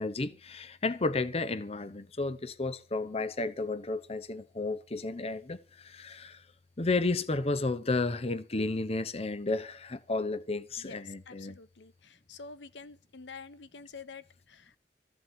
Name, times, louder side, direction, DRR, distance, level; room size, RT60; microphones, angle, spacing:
voice 1, 0.0-6.4 6.8-11.6, left 3 dB, 35° left, 0.8 m, -32 dB
voice 2, 10.8-14.8, left 4 dB, 80° left, 0.9 m, -48 dB
14.5 x 7.1 x 8.6 m
head